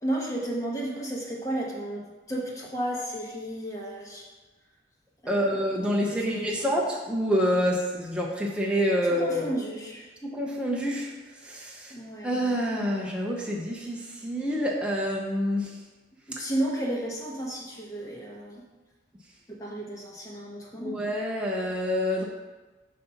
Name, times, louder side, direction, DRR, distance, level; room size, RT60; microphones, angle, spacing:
voice 1, 0.0-4.3 5.2-6.6 9.0-10.1 11.9-12.3 16.3-18.6 19.5-21.0, right 1 dB, 20° left, -2 dB, 1.1 m, -33 dB
voice 2, 5.3-9.5 10.2-11.1 11.4-11.9 12.2-15.7 20.8-22.2, equal, 5° right, -3 dB, 0.7 m, -27 dB
7.4 x 2.7 x 5.7 m, 1.2 s
head